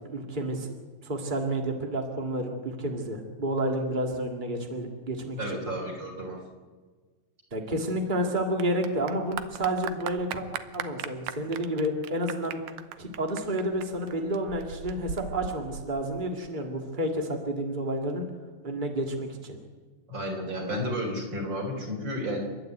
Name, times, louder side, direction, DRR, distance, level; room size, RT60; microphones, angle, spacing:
voice 1, 0.1-0.7 1.0-5.6 7.5-10.4 10.7-12.6 13.0-18.2 18.6-19.6, right 1 dB, 40° right, 2 dB, 0.6 m, -30 dB
voice 2, 5.4-6.4 20.1-22.4, equal, 25° right, 2 dB, 4.3 m, -32 dB
Clapping / Applause, 7.5-16.5, right 10 dB, 85° right, 1.9 m, -39 dB
29.5 x 12.0 x 9.2 m, 1.4 s
omnidirectional pair, 5.2 m